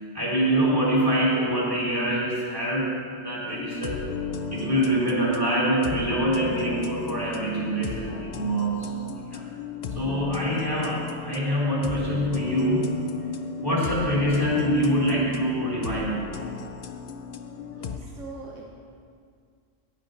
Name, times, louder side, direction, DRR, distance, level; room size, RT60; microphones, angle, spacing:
voice 1, 0.1-4.1 4.5-9.4 9.9-13.0 13.6-16.2, right 1 dB, 15° right, -6 dB, 2.7 m, -25 dB
sound 1, 3.5-18.0, left 5 dB, 65° left, 0.4 m, -35 dB
voice 2, 17.6-18.7, right 3 dB, 80° right, -1 dB, 1.2 m, -42 dB
15.0 x 10.5 x 2.6 m, 2.2 s
omnidirectional pair, 1.3 m